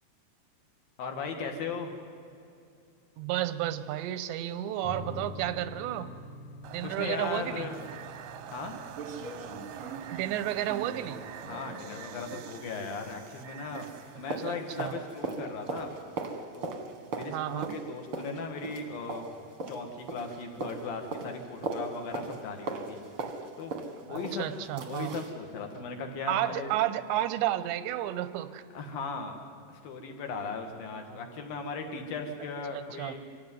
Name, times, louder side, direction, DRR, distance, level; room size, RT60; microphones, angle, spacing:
voice 1, 1.0-1.9 6.8-7.9 8.5-8.8 11.4-13.9 14.2-15.9 16.5-16.8 17.1-19.3 19.7-23.0 23.6-23.7 24.0-24.5 24.8-26.7 28.7-29.4 29.7-33.2, left 4 dB, 60° left, 4 dB, 3.2 m, -37 dB
voice 2, 3.2-6.1 6.7-7.7 10.1-11.2 14.4-15.0 17.3-17.8 24.1-25.2 26.3-28.6 32.7-33.1, right 13 dB, 90° right, 13 dB, 3.0 m, -32 dB
sound 1, 4.8-13.8, left 1 dB, 85° left, 0.9 m, -48 dB
sound 2, 6.6-15.7, right 9 dB, 75° right, 2.1 m, -47 dB
sound 3, 8.1-8.2 8.5-8.6 8.9-13.5 13.7-25.4 25.7-25.8, right 3 dB, 55° right, 1.6 m, -40 dB
25.0 x 16.0 x 9.4 m, 2.6 s
omnidirectional pair, 5.1 m